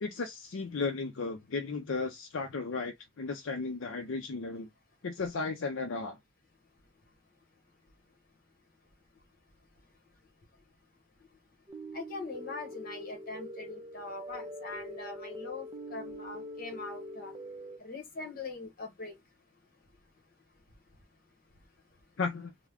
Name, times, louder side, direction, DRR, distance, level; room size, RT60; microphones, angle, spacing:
voice 1, 0.0-4.7 5.0-6.2 22.2-22.5, left 4 dB, 65° left, 0.5 m, -35 dB
sound 1, 11.7-17.8, equal, 20° right, 0.5 m, -44 dB
voice 2, 11.9-17.3 17.8-19.2, left 3 dB, 40° left, 1.1 m, -42 dB
3.5 x 2.1 x 3.4 m
head